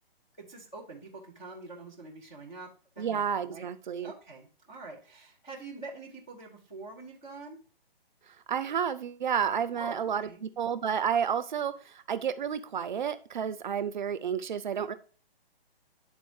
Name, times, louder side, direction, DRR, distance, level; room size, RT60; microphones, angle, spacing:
voice 1, 0.4-2.7 2.9-3.7 4.0-7.6 9.7-10.4, right 3 dB, 5° left, 0.4 m, -45 dB
voice 2, 3.0-4.1 8.3-14.9, right 8 dB, 50° right, 0.5 m, -31 dB
10.5 x 3.9 x 3.1 m
hypercardioid pair, 150°, 31 cm